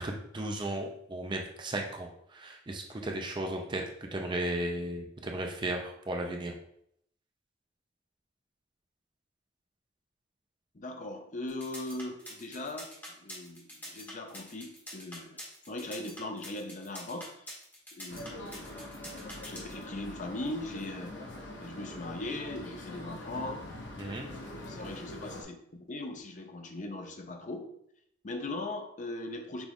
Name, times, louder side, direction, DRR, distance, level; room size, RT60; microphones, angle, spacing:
voice 1, 0.0-6.5 24.0-24.3, right 1 dB, 25° right, 2 dB, 0.5 m, -35 dB
voice 2, 10.7-15.4 15.7-17.4 17.9-18.4 18.7-19.1 19.4-21.2 21.6-23.7 24.4-25.6 25.9-27.7 28.2-29.7, left 2 dB, 40° left, 5 dB, 0.5 m, -39 dB
sound 1, 11.5-19.8, left 1 dB, 10° left, 1.1 m, -45 dB
sound 2, 18.1-25.4, left 1 dB, 65° left, 0.9 m, -43 dB
6.0 x 2.4 x 3.5 m, 0.71 s
head